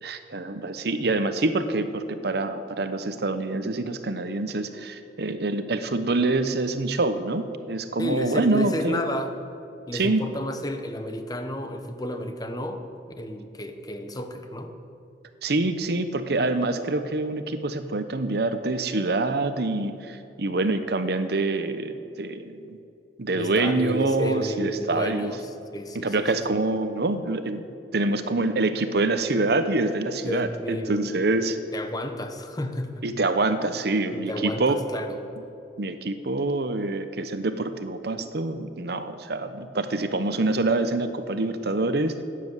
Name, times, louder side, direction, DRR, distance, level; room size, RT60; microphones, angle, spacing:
voice 1, 0.0-9.0 9.9-10.3 15.4-22.8 23.2-25.4 25.9-27.6 27.9-31.6 33.0-34.8 35.8-42.2, right 2 dB, 65° right, 10 dB, 0.8 m, -26 dB
voice 2, 8.0-9.3 9.9-12.8 13.2-14.7 23.3-26.3 30.2-31.3 31.7-33.1 34.1-35.2, left 1 dB, 20° left, 6 dB, 1.0 m, -31 dB
13.0 x 9.4 x 8.0 m, 2.9 s
head